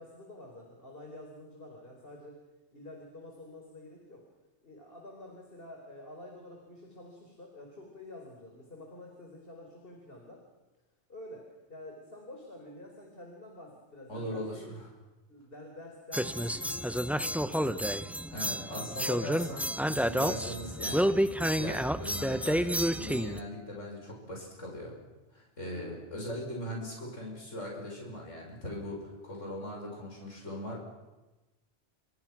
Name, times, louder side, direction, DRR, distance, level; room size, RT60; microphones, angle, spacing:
voice 1, 0.0-2.4 2.7-4.3 4.6-10.4 11.1-14.8 15.3-18.1 25.7-26.1, left 1 dB, 50° left, 1 dB, 4.5 m, -48 dB
voice 2, 14.1-14.9 18.3-21.1 21.6-25.0 25.3-30.8, equal, 85° left, -2 dB, 6.7 m, -40 dB
sound 1, 16.1-23.4, equal, ahead, 0.6 m, -30 dB
30.0 x 27.5 x 6.1 m, 1.1 s
omnidirectional pair, 1.3 m